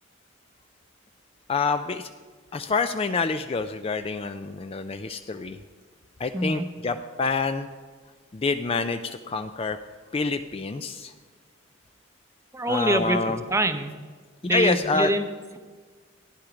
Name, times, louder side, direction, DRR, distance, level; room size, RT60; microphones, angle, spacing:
voice 1, 1.5-2.1 2.5-5.6 6.2-7.7 8.3-9.8 10.1-11.1 12.7-13.4 14.4-15.1, left 4 dB, 30° left, 9 dB, 0.4 m, -27 dB
voice 2, 6.3-6.6 12.5-13.9 14.4-15.3, right 1 dB, 15° right, 9 dB, 0.7 m, -25 dB
15.0 x 10.0 x 5.1 m, 1.5 s
head